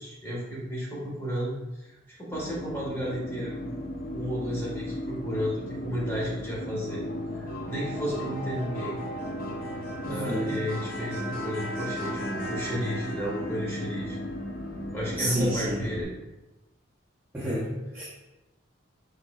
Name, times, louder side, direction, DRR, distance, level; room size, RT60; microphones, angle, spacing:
voice 1, 0.0-3.8 4.1-7.0 7.3-9.0 10.0-14.2 14.9-16.1, equal, 15° left, -6 dB, 1.3 m, -33 dB
sound 1, 2.3-16.0, equal, 45° left, 0.6 m, -35 dB
voice 2, 10.1-10.6 15.1-15.7 17.3-18.1, equal, 10° right, -8 dB, 0.6 m, -30 dB
4.8 x 4.4 x 2.3 m, 1.0 s
head